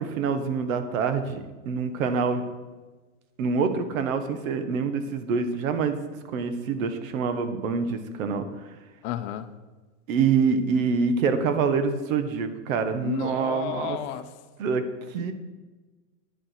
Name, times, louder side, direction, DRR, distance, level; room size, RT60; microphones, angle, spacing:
voice 1, 0.0-2.4 3.4-6.0 6.3-8.4 10.1-14.0 14.6-15.3, right 5 dB, 70° right, 9 dB, 1.5 m, -26 dB
voice 2, 9.0-9.5 13.0-14.2 15.2-15.3, left 12 dB, 50° left, 10 dB, 0.8 m, -32 dB
10.0 x 8.5 x 5.9 m, 1.2 s
supercardioid pair, 145°, 41 cm